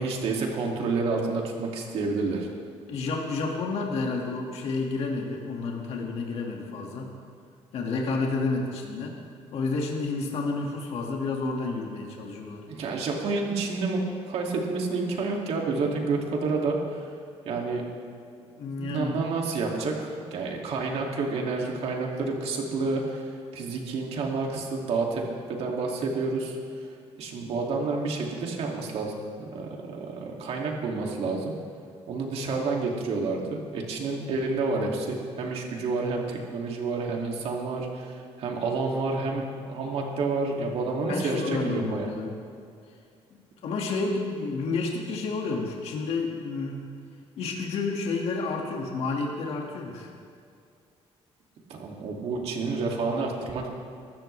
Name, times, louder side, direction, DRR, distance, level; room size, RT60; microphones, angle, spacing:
voice 1, 0.0-2.5 12.7-17.1 17.4-17.8 18.8-25.2 25.5-26.6 27.2-31.5 32.1-42.1 51.7-53.7, right 3 dB, 65° right, 0 dB, 2.5 m, -29 dB
voice 2, 2.9-7.1 7.7-9.2 9.5-12.6 18.6-19.2 41.1-42.3 43.3-46.8 47.4-50.1, left 3 dB, 65° left, 0 dB, 2.1 m, -30 dB
23.0 x 13.0 x 3.4 m, 2.4 s
cardioid pair, 140°, 11 cm